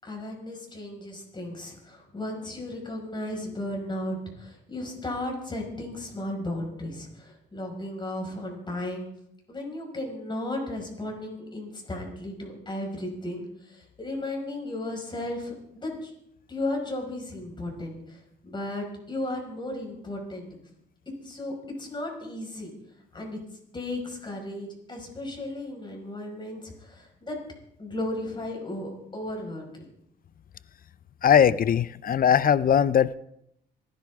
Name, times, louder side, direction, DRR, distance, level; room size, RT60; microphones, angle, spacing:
voice 1, 0.0-9.1 9.5-16.1 16.5-20.5 21.2-22.7 23.1-23.4 23.7-27.4 27.8-29.8, left 1 dB, 25° left, 5.6 m, -35 dB
voice 2, 31.2-33.2, left 8 dB, 45° left, 0.5 m, -20 dB
26.5 x 10.5 x 3.7 m
cardioid pair, 90°, 20 cm